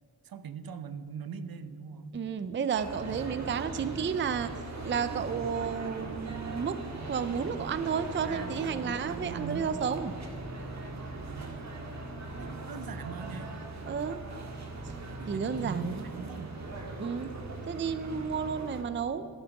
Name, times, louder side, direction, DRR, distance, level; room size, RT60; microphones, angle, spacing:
voice 1, 0.2-2.2 8.2-9.8 11.2-11.7 12.3-13.5 15.1-16.6, right 6 dB, 70° right, 12 dB, 0.8 m, -41 dB
voice 2, 2.1-4.5 4.9-6.8 7.1-10.1 13.9-14.2 15.3-15.9 17.0-17.3 17.7-19.3, right 6 dB, 30° right, 12 dB, 0.5 m, -32 dB
sound 1, 2.8-18.8, right 2 dB, 50° right, 1.8 m, -40 dB
13.5 x 12.0 x 5.9 m, 2.2 s
wide cardioid pair, 145°, 37 cm